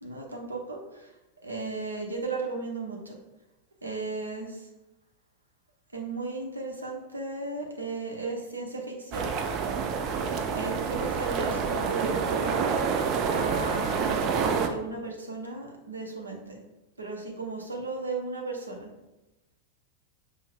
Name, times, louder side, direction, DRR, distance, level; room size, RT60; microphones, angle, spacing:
voice 1, 0.0-1.1 1.4-3.2 3.8-4.7 5.9-9.3 10.5-12.7 13.3-16.6 17.0-18.9, right 3 dB, 80° right, 2 dB, 0.7 m, -35 dB
sound 1, 9.1-14.7, right 6 dB, 35° right, 0.4 m, -28 dB
5.3 x 2.0 x 3.5 m, 1.0 s
figure-of-eight pair, 90°, 0 cm